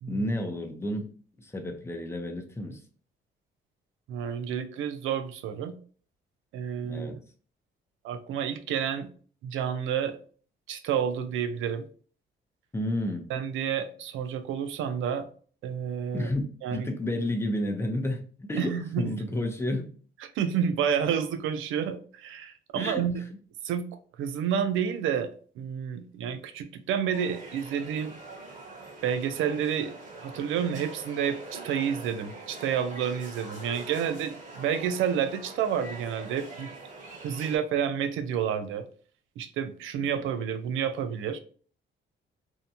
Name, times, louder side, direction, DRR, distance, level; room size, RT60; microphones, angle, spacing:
voice 1, 0.1-1.1 1.4-2.8 6.8-7.1 12.7-13.3 16.1-16.4 16.7-19.9 22.8-23.0 40.0-40.1, left 1 dB, 15° left, 0.6 m, -31 dB
voice 2, 4.1-5.7 6.5-7.2 8.0-9.1 9.4-10.2 10.7-11.8 13.3-15.3 15.6-16.3 16.6-16.9 18.6-19.1 20.3-23.2 23.6-23.9 24.2-28.2 29.0-29.9 30.2-36.7 37.2-38.8 39.4-41.4, right 8 dB, 85° right, 0.4 m, -29 dB
sound 1, 27.1-37.6, right 2 dB, 40° right, 1.1 m, -44 dB
2.7 x 2.1 x 2.7 m
cardioid pair, 90°, 20 cm